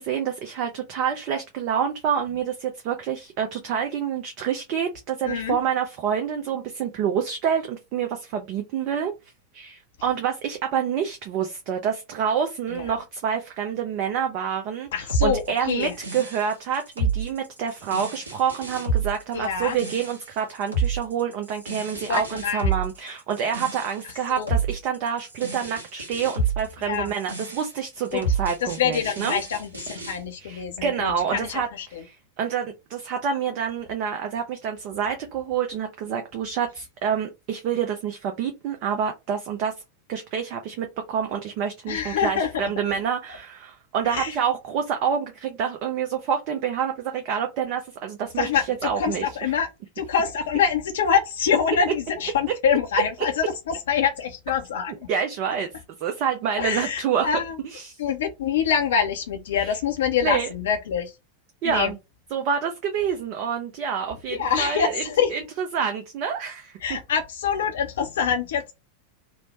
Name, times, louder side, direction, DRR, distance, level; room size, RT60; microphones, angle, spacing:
voice 1, 0.0-9.1 9.5-29.4 30.4-39.7 40.1-49.5 55.1-55.7 56.0-57.3 57.6-58.0 59.5-59.8 60.2-60.5 61.6-62.0 62.3-67.0, right 7 dB, 45° right, 0.5 m, -27 dB
voice 2, 5.2-5.6 12.7-12.8 14.9-15.9 19.3-19.8 22.1-22.7 24.3-24.5 26.8-27.1 28.1-28.2 28.6-32.0 41.9-42.6 44.0-44.3 48.4-49.7 50.0-54.9 56.6-57.5 58.0-61.1 61.6-61.9 64.3-65.3 66.8-68.7, left 7 dB, 60° left, 0.5 m, -25 dB
sound 1, 15.1-30.2, right 4 dB, 75° right, 1.3 m, -29 dB
3.1 x 2.0 x 4.1 m
figure-of-eight pair, 90°, 0 cm